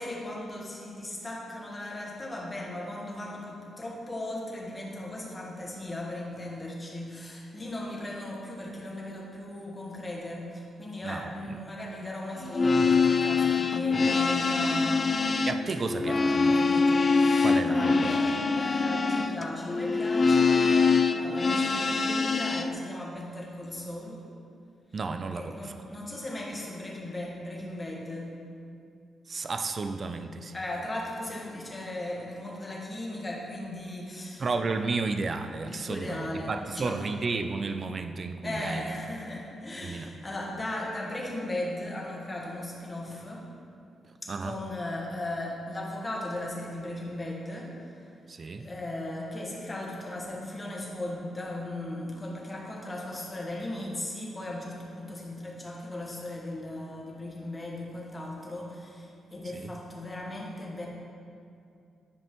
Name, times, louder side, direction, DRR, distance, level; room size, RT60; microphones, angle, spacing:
voice 1, 0.0-15.1 16.0-24.2 25.3-28.4 30.5-34.4 35.6-37.0 38.4-43.5 44.2-48.1 48.6-60.9, left 1 dB, 20° left, -3 dB, 1.4 m, -37 dB
voice 2, 11.0-11.6 15.5-16.6 17.4-18.1 24.9-25.7 29.3-30.5 34.4-38.9 39.8-40.1 44.3-44.6 48.3-48.7 59.6-59.7, right 4 dB, 40° right, 7 dB, 0.4 m, -32 dB
sound 1, 12.4-22.7, left 4 dB, 35° left, 0.3 m, -24 dB
9.7 x 5.4 x 3.0 m, 2.5 s
cardioid pair, 100°, 0 cm